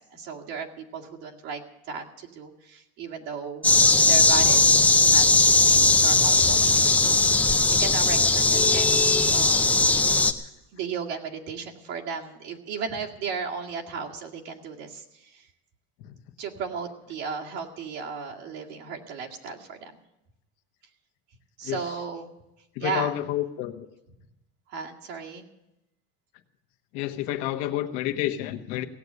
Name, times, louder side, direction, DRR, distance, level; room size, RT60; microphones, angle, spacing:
voice 1, 0.1-1.6 1.9-3.7 4.0-10.0 10.7-15.5 16.4-19.9 21.6-22.3 22.8-23.1 24.7-25.5, right 5 dB, 60° right, 0 dB, 2.1 m, -35 dB
sound 1, 3.6-10.3, left 3 dB, 5° left, 0.5 m, -19 dB
voice 2, 21.6-22.0 22.7-23.9 26.9-28.8, left 13 dB, 60° left, 6 dB, 1.2 m, -30 dB
16.5 x 8.0 x 9.6 m, 0.89 s
cardioid pair, 170°, 30 cm